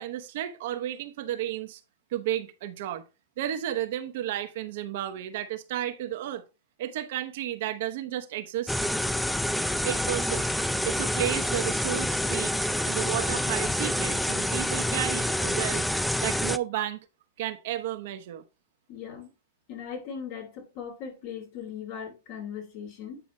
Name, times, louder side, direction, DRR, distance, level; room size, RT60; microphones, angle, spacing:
voice 1, 0.0-1.8 2.1-3.1 3.4-6.4 6.8-8.7 9.8-10.5 10.8-12.5 12.8-15.9 16.2-17.0 17.4-18.4, right 12 dB, 60° right, 0.9 m, -32 dB
sound 1, 8.7-16.6, left 1 dB, ahead, 0.3 m, -27 dB
voice 2, 18.9-19.3 19.7-23.2, left 7 dB, 50° left, 2.7 m, -39 dB
9.0 x 5.0 x 3.1 m
hypercardioid pair, 120°, 0 cm